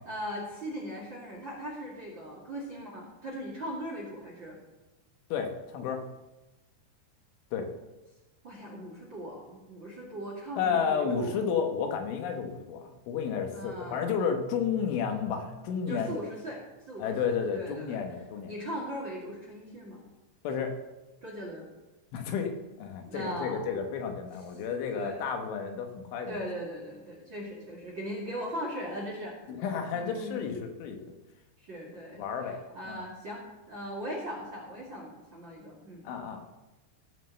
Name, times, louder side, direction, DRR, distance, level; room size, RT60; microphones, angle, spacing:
voice 1, 0.1-4.6 8.4-11.4 13.5-14.2 15.9-16.6 16.9-18.0 18.5-20.0 21.2-21.7 23.1-23.7 24.9-25.2 26.3-29.3 29.9-30.5 31.6-33.4 33.7-36.1, equal, 35° right, -3 dB, 2.1 m, -39 dB
voice 2, 5.3-6.0 7.5-7.7 10.6-16.2 17.0-18.5 20.5-20.8 22.1-26.4 29.5-31.0 32.2-32.6 32.9-33.0 36.0-36.4, left 6 dB, 90° left, 4 dB, 3.8 m, -32 dB
sound 1, 12.8-16.8, left 3 dB, 70° left, 5.1 m, -49 dB
15.5 x 5.6 x 6.8 m, 1.1 s
omnidirectional pair, 5.3 m